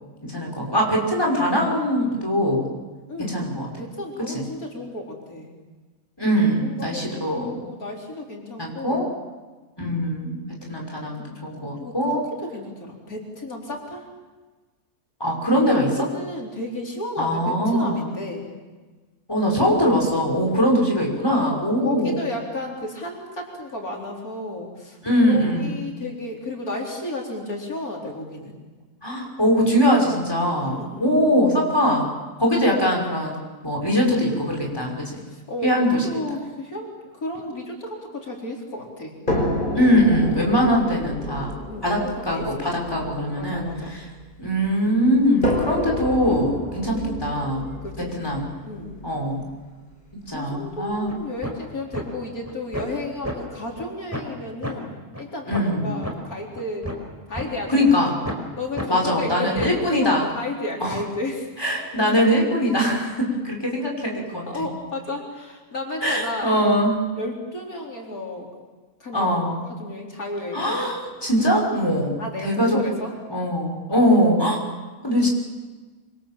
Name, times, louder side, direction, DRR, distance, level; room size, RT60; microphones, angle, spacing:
voice 1, 0.2-2.6 3.2-3.7 4.3-4.4 6.2-7.5 8.6-9.1 9.8-10.4 10.7-12.2 15.2-15.9 17.2-18.1 19.3-22.2 25.0-25.7 29.0-32.1 32.4-33.4 33.6-35.2 35.6-35.9 39.7-41.5 41.8-44.0 44.4-47.7 48.2-48.5 49.0-49.5 50.3-51.1 55.5-55.9 57.7-58.2 58.9-60.2 60.8-61.0 61.6-64.5 66.0-67.0 69.1-69.6 70.5-72.1 72.4-72.8 73.3-74.6 75.0-75.3, equal, 15° left, -1 dB, 5.9 m, -22 dB
voice 2, 3.1-3.4 3.8-5.5 6.6-9.1 11.8-14.1 15.9-18.5 21.4-25.0 25.3-28.6 30.6-31.5 35.3-35.7 36.0-39.2 41.7-43.1 43.4-44.0 47.8-48.2 48.6-49.0 50.3-57.0 57.3-58.0 58.6-61.5 64.5-66.6 67.2-68.5 69.0-70.8 72.2-73.1 73.9-74.2, left 2 dB, 85° left, -1 dB, 4.7 m, -33 dB
sound 1, 39.3-44.5 45.4-49.4 50.4-50.5 50.9-51.0, left 1 dB, 35° left, 5.3 m, -29 dB
Guitar Snare, 51.1-51.2 51.4-51.6 51.9-52.1 52.4-53.0 53.2-53.4 53.8-53.9 54.1-54.3 54.6-54.7 55.1-55.2 55.5-55.7 56.0-56.1 56.5-57.5 57.9-58.0 58.2-58.4 58.8-58.9 59.3-59.8, equal, 10° right, 4.5 m, -31 dB
27.0 x 25.5 x 7.6 m, 1.3 s
omnidirectional pair, 1.5 m